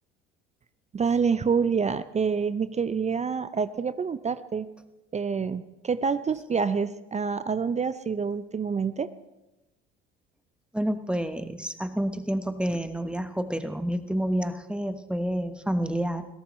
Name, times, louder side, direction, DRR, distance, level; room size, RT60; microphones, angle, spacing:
voice 1, 0.9-4.7 5.1-9.1, right 5 dB, 25° right, 14 dB, 0.6 m, -27 dB
voice 2, 10.7-16.3, equal, 5° right, 9 dB, 1.2 m, -29 dB
22.0 x 16.5 x 3.2 m, 1.0 s
hypercardioid pair, 60°, 29 cm